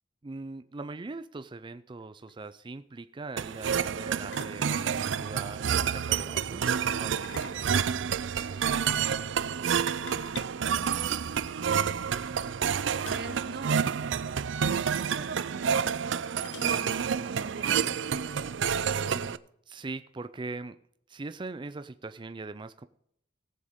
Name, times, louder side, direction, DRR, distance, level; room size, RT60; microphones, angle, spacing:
voice 1, 0.2-7.8 19.0-19.4 19.7-20.8 21.1-22.9, right 3 dB, 25° right, 11 dB, 0.4 m, -41 dB
sound 1, 2.0-2.1 2.3-2.5 4.3-5.1 7.0-8.5 9.9-11.5 13.0-13.5 13.8-13.9 14.2-14.4 15.4-15.5 16.4-17.2, left 7 dB, 80° left, 0.6 m, -48 dB
sound 2, 3.4-19.4, right 7 dB, 90° right, 0.5 m, -29 dB
voice 2, 11.6-14.0 14.9-16.9 17.3-18.4, right 3 dB, 65° right, 12 dB, 0.9 m, -44 dB
18.5 x 7.4 x 3.6 m, 0.71 s
head